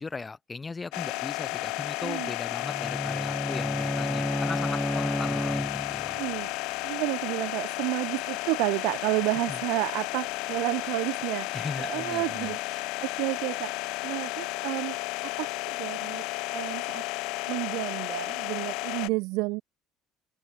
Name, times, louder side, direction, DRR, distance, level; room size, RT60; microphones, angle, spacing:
voice 1, 0.0-6.2 9.5-9.6 11.5-12.6, left 4 dB, 20° left, 2.7 m, -38 dB
sound 1, 0.9-19.1, left 23 dB, 80° left, 0.5 m, -33 dB
Bowed string instrument, 2.6-6.2, equal, ahead, 1.4 m, -31 dB
voice 2, 6.1-6.5 6.8-11.5 11.8-13.7 14.0-15.0 15.4-16.2 16.5-17.0 17.5-19.6, right 25 dB, 80° right, 0.8 m, -31 dB
open air
cardioid pair, 115°, 0 cm